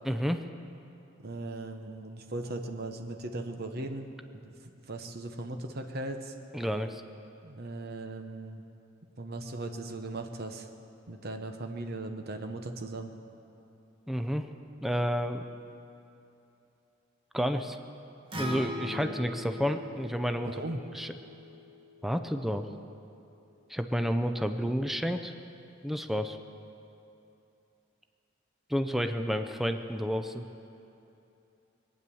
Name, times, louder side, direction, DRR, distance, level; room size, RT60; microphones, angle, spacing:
voice 1, 0.1-0.4 6.5-7.0 14.1-14.5 14.8-15.4 17.3-17.8 18.4-20.6 20.9-21.1 22.0-22.7 23.7-25.3 25.8-26.4 28.7-30.5, equal, ahead, 7 dB, 0.5 m, -30 dB
voice 2, 1.2-6.3 7.4-8.6 9.2-10.7 11.1-13.1 20.4-20.8, right 2 dB, 55° right, 5 dB, 1.0 m, -38 dB
Acoustic guitar, 18.3-22.5, left 1 dB, 25° right, 1.6 m, -41 dB
21.0 x 9.3 x 7.0 m, 2.8 s
head